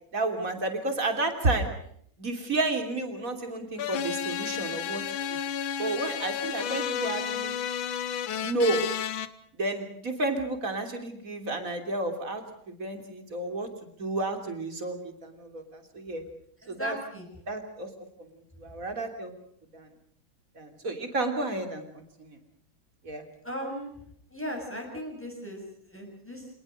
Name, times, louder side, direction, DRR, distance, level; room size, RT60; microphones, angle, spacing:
voice 1, 0.1-1.7 2.2-5.0 5.3-5.4 5.8-7.6 8.4-8.8 9.5-16.2 16.7-17.0 17.5-17.9 18.2-18.3 18.6-19.3 19.7-19.9 20.6-22.4 23.0-23.2, right 2 dB, 40° right, 5 dB, 3.6 m, -31 dB
sound 1, 3.8-9.3, left 9 dB, 75° left, 1.9 m, -32 dB
voice 2, 16.6-17.3 23.4-23.9 24.3-26.5, equal, 5° left, 1 dB, 7.0 m, -37 dB
26.5 x 19.5 x 6.5 m, 0.65 s
omnidirectional pair, 2.2 m